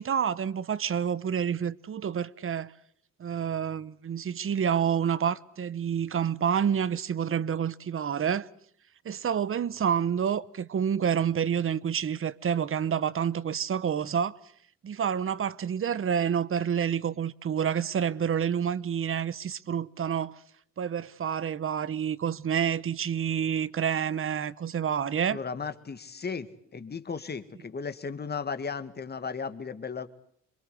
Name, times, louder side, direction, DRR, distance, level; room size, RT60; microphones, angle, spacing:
voice 1, 0.0-2.7 3.2-8.5 9.0-14.4 14.8-20.4 20.8-25.4, right 8 dB, 45° right, 1.1 m, -28 dB
voice 2, 25.3-30.1, left 5 dB, 35° left, 2.0 m, -35 dB
26.5 x 23.0 x 8.2 m
cardioid pair, 90°, 30 cm